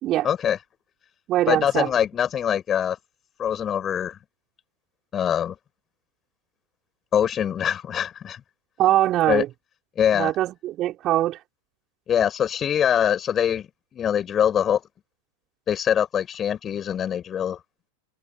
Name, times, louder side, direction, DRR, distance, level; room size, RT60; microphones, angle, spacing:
voice 1, 0.2-0.6 1.5-3.0 3.4-4.2 5.1-5.5 7.1-8.4 9.3-9.4 10.0-10.3 12.1-14.8 15.7-17.6, left 9 dB, 25° left, 5.9 m, -23 dB
voice 2, 1.3-1.9 8.8-9.5 10.1-11.4, right 14 dB, 35° right, 5.4 m, -22 dB
figure-of-eight pair, 90°, 0 cm